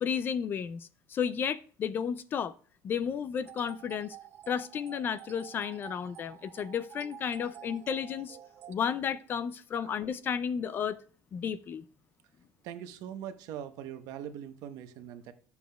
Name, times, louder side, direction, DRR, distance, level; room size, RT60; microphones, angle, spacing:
voice 1, 0.0-2.5 2.8-4.2 4.5-8.4 8.7-11.0 11.3-11.8, left 7 dB, 30° left, 0.4 m, -33 dB
sound 1, 3.4-8.8, right 10 dB, 40° right, 0.5 m, -50 dB
voice 2, 12.6-15.3, right 10 dB, 60° right, 0.9 m, -42 dB
11.0 x 7.1 x 2.3 m
cardioid pair, 160°, 7 cm